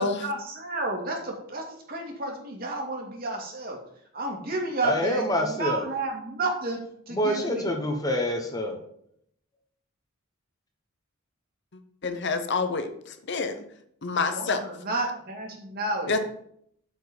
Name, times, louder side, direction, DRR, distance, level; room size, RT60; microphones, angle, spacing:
voice 1, 0.0-3.8 4.1-6.8 7.1-7.7 14.3-16.2, right 2 dB, 45° right, 1 dB, 2.2 m, -31 dB
voice 2, 4.8-5.8 7.1-8.8, equal, 15° left, 3 dB, 1.0 m, -26 dB
voice 3, 12.0-13.6 14.0-14.6 16.1-16.2, left 4 dB, 55° left, 8 dB, 0.8 m, -27 dB
8.0 x 4.6 x 7.0 m, 0.69 s
head